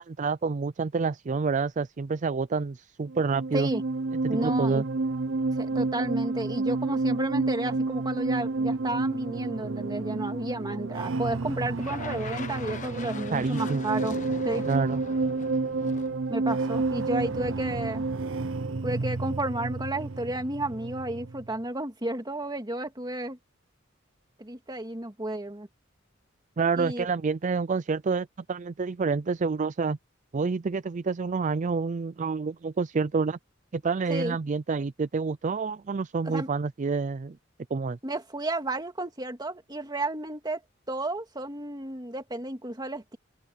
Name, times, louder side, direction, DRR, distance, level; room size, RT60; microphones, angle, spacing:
voice 1, 0.0-3.7 4.2-4.8 13.3-13.9 14.7-15.0 26.6-30.0 30.3-33.4 33.7-37.4 37.7-38.0, right 4 dB, 40° right, 0.4 m, -28 dB
sound 1, 3.1-21.5, right 3 dB, 80° right, 0.8 m, -30 dB
voice 2, 4.3-4.8 5.6-14.2 14.4-14.6 16.3-18.1 18.8-23.4 24.4-25.7 26.8-27.1 34.1-34.4 36.2-36.5 38.0-40.6 40.9-43.2, right 1 dB, 20° right, 2.2 m, -32 dB
sound 2, 11.8-17.1, left 4 dB, 40° left, 1.3 m, -42 dB
open air
head